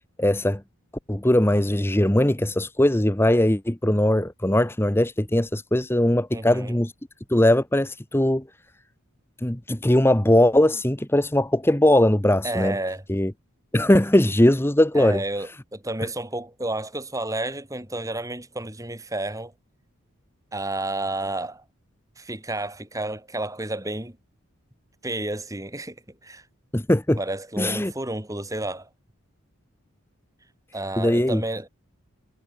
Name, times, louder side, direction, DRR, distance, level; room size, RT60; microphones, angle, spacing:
voice 1, 0.2-0.6 1.1-6.9 7.3-8.4 9.4-12.8 13.1-13.3 13.7-15.2 26.7-27.2 27.6-27.9 31.0-31.4, left 1 dB, 10° left, 0.9 m, -20 dB
voice 2, 6.3-6.8 12.4-13.0 15.0-19.5 20.5-21.6 22.2-24.2 25.0-26.0 26.2-26.4 27.2-28.9 30.7-31.7, right 2 dB, 15° right, 3.8 m, -31 dB
head